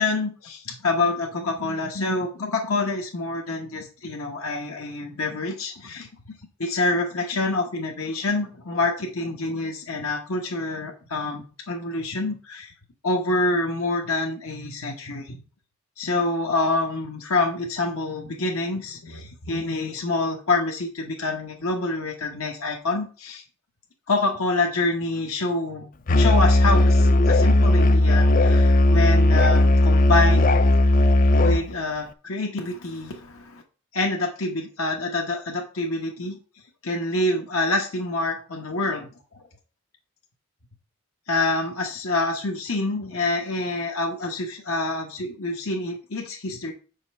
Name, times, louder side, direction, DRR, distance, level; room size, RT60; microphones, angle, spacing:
voice 1, 0.0-6.3 6.6-12.7 13.0-15.4 16.0-23.4 24.1-25.9 26.1-30.6 31.4-33.6 33.9-36.4 36.8-39.1 41.3-46.7, left 2 dB, 80° left, 1 dB, 1.3 m, -26 dB
Musical instrument, 26.1-31.7, left 2 dB, 40° left, 0.4 m, -17 dB
6.8 x 5.5 x 5.4 m, 0.37 s
head